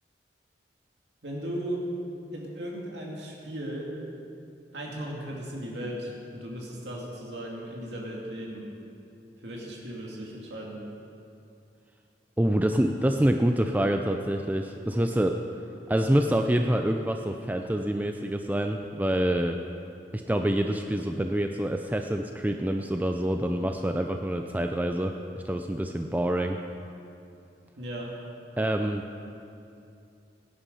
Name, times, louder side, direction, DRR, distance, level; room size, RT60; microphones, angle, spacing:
voice 1, 1.2-1.9 2.3-3.9 4.7-8.7 9.4-10.8 27.8-28.1, right 1 dB, 80° right, -3 dB, 2.3 m, -36 dB
voice 2, 12.4-15.3 15.9-19.6 20.1-26.6 28.6-29.0, right 1 dB, 10° right, 5 dB, 0.4 m, -26 dB
17.0 x 10.0 x 5.5 m, 2.6 s
head